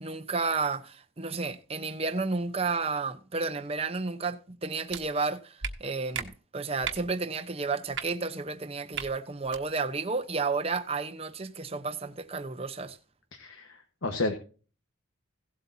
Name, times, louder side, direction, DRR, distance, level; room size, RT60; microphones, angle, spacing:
voice 1, 0.0-13.0, right 4 dB, 30° right, 0.9 m, -32 dB
sound 1, 4.9-5.0 5.6-5.7 6.1-6.3 6.8-7.0 7.9-8.0 8.9-9.1 9.4-9.6, right 7 dB, 65° right, 1.3 m, -34 dB
voice 2, 13.4-14.3, left 2 dB, 80° left, 1.4 m, -31 dB
17.0 x 8.1 x 2.8 m
head